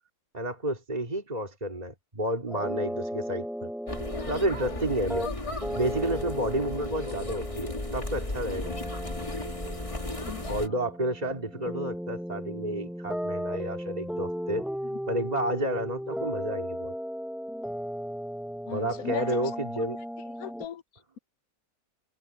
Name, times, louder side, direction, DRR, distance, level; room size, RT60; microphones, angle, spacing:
voice 1, 0.3-3.7 4.3-5.3 5.8-8.9 10.5-14.7 15.1-16.9 18.7-20.0, right 1 dB, 25° right, 2.9 m, -31 dB
sound 1, 2.5-20.7, equal, ahead, 0.6 m, -36 dB
sound 2, 3.9-10.7, left 2 dB, 20° left, 2.0 m, -35 dB
voice 2, 10.2-10.7 14.9-15.0 18.7-19.4 20.3-20.8, left 9 dB, 75° left, 1.3 m, -38 dB
omnidirectional pair, 1.6 m